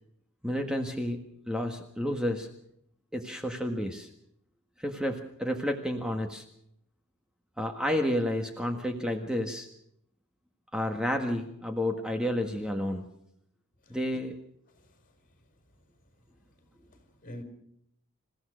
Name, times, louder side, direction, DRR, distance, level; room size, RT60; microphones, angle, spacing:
voice 1, 0.4-1.2 1.5-2.5 3.1-4.1 4.8-6.4 7.6-9.7 10.7-13.0 13.9-14.3, left 1 dB, 5° right, 1.6 m, -30 dB
voice 2, 16.8-17.4, equal, 40° left, 5.1 m, -46 dB
27.5 x 16.0 x 6.4 m
head